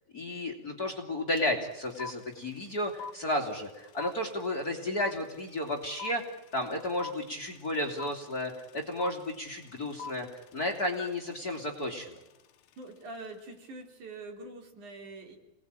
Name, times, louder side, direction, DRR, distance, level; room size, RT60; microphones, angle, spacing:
voice 1, 0.1-6.2 6.5-10.3 10.5-12.2, left 1 dB, 30° left, 5 dB, 2.9 m, -33 dB
sound 1, 1.4-1.5 1.7-12.8, left 6 dB, 65° left, 2.1 m, -44 dB
voice 2, 12.8-15.4, right 2 dB, 60° right, 3 dB, 4.9 m, -44 dB
28.5 x 20.0 x 8.9 m, 0.96 s
omnidirectional pair, 4.0 m